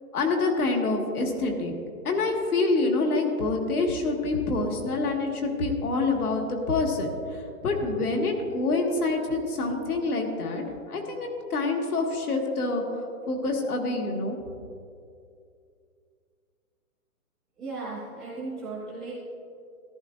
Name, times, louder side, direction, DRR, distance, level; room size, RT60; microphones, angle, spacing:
voice 1, 0.1-1.8 2.0-14.4, left 3 dB, 75° left, 2 dB, 1.9 m, -27 dB
voice 2, 17.6-19.1, right 3 dB, ahead, -12 dB, 0.6 m, -36 dB
14.0 x 12.0 x 2.6 m, 2.4 s
hypercardioid pair, 170°, 45 cm